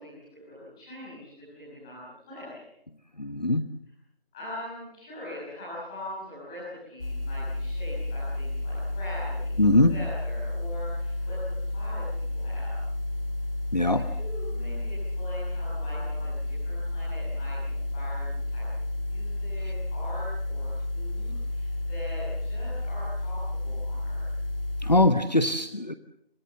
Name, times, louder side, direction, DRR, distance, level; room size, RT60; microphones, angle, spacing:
voice 1, 0.0-2.6 4.3-11.4 11.7-12.0 12.3-12.8 13.9-18.6 19.0-20.7 20.9-24.2, left 1 dB, 5° left, -9 dB, 6.0 m, -42 dB
voice 2, 3.2-3.7 9.6-9.9 13.7-14.0 24.8-26.0, left 2 dB, 45° left, 10 dB, 1.2 m, -22 dB
sound 1, 7.0-25.1, left 2 dB, 65° left, 1.5 m, -31 dB
27.5 x 26.0 x 7.2 m, 0.74 s
figure-of-eight pair, 175°, 30 cm